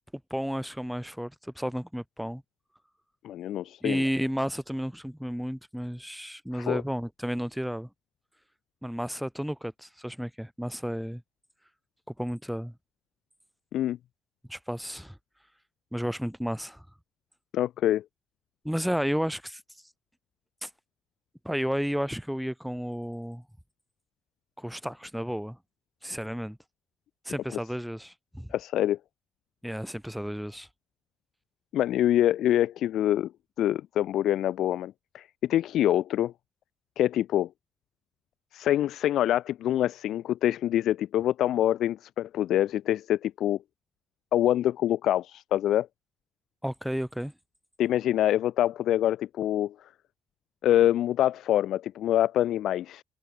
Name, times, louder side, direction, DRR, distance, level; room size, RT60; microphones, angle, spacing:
voice 1, 0.1-2.4 3.8-7.9 8.8-11.2 12.1-12.7 14.5-15.2 15.9-16.8 18.6-19.6 20.6-20.7 21.4-23.4 24.6-25.6 26.0-26.6 27.2-28.5 29.6-30.7 46.6-47.3, equal, ahead, 5.1 m, -32 dB
voice 2, 3.2-4.0 6.5-6.8 13.7-14.0 17.5-18.0 28.5-29.0 31.7-33.3 33.6-36.3 37.0-37.5 38.5-43.6 44.3-45.9 47.8-49.7 50.6-53.0, left 12 dB, 80° left, 1.3 m, -25 dB
cardioid pair, 90°, 0 cm